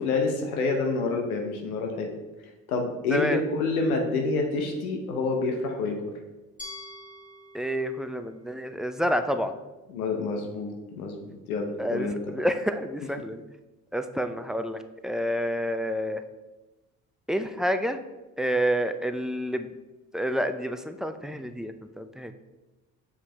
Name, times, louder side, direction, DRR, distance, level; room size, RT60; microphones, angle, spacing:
voice 1, 0.0-2.1 2.7-6.0 9.9-12.1, left 3 dB, 90° left, 2 dB, 0.8 m, -28 dB
Glass, 6.6-9.5, left 2 dB, 20° left, 1.6 m, -46 dB
voice 2, 7.5-9.5 11.8-13.4 13.9-16.2 17.3-18.0 18.4-19.7 20.1-22.3, equal, ahead, 9 dB, 0.3 m, -28 dB
6.8 x 4.8 x 3.3 m, 1.1 s
hypercardioid pair, 55°, 42 cm